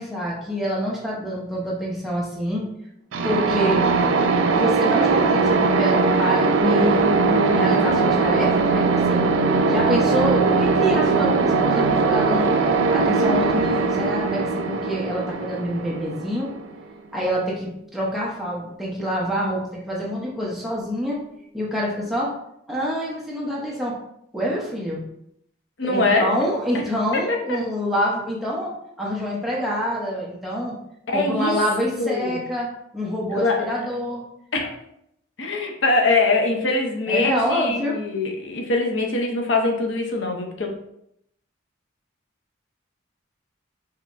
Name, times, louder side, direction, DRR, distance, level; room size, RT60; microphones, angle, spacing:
voice 1, 0.0-2.6 3.2-3.8 4.5-7.1 7.5-9.3 9.7-12.5 12.9-16.5 17.1-21.2 21.5-22.3 22.7-23.9 24.3-25.0 25.8-28.7 29.0-30.7 31.1-32.7 32.9-34.2 37.1-38.0, equal, ahead, -6 dB, 0.8 m, -26 dB
sound 1, 3.1-16.8, right 4 dB, 75° right, 0.4 m, -20 dB
Piano, 6.6-15.7 16.1-17.3 17.5-17.6 17.9-18.0 18.2-18.3 18.9-19.0, right 1 dB, 25° right, 0.5 m, -31 dB
voice 2, 25.8-26.4 27.1-27.4 31.1-31.6 32.0-32.4 33.3-33.7 34.5-34.7 35.4-40.7, left 3 dB, 70° left, 1 dB, 0.7 m, -22 dB
5.5 x 2.9 x 2.5 m, 0.76 s
head